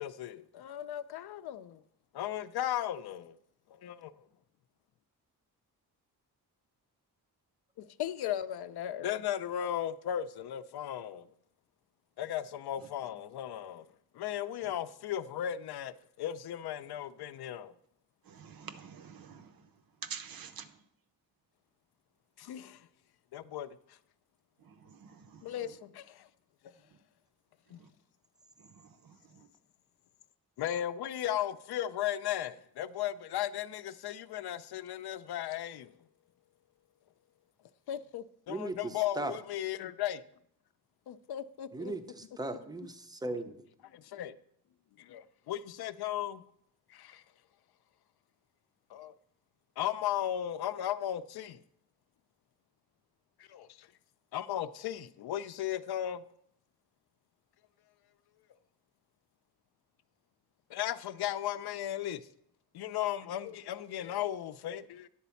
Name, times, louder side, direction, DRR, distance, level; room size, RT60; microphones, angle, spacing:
voice 1, 0.0-1.8 2.1-3.4 3.7-4.1 7.8-11.3 12.2-13.9 14.1-17.7 22.4-22.9 23.3-24.0 25.4-26.3 26.6-26.7 27.7-27.8 30.6-35.9 37.9-40.2 41.1-42.0 43.9-44.3 45.0-46.4 46.9-47.2 48.9-49.1 49.8-51.6 53.4-53.9 54.3-56.2 60.7-62.3 62.7-65.1, left 11 dB, 70° left, 0.5 m, -36 dB
voice 2, 18.2-20.9 24.6-25.8 26.8-27.0 27.7-27.9 28.6-29.5, right 7 dB, 60° right, 0.7 m, -49 dB
voice 3, 38.5-39.3 41.7-43.6, right 2 dB, 10° right, 0.5 m, -38 dB
9.9 x 4.2 x 6.9 m
wide cardioid pair, 160°, 40 cm